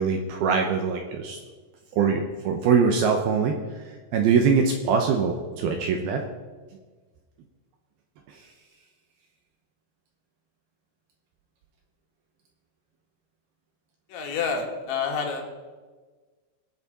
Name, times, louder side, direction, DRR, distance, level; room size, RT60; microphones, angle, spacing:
voice 1, 0.0-1.4 1.9-3.6 4.1-6.2 8.3-8.4, right 5 dB, 75° right, 3 dB, 2.4 m, -23 dB
voice 2, 14.1-15.4, left 5 dB, 80° left, 1 dB, 4.1 m, -28 dB
22.0 x 8.1 x 4.3 m, 1.4 s
omnidirectional pair, 5.3 m